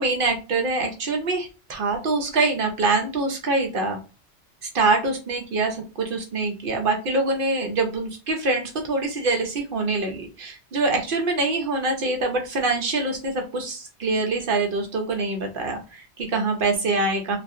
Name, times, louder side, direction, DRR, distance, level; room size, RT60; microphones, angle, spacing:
voice 1, 0.0-4.0 4.6-17.4, right 3 dB, 55° right, 3 dB, 0.7 m, -24 dB
2.4 x 2.4 x 2.6 m, 0.32 s
omnidirectional pair, 1.2 m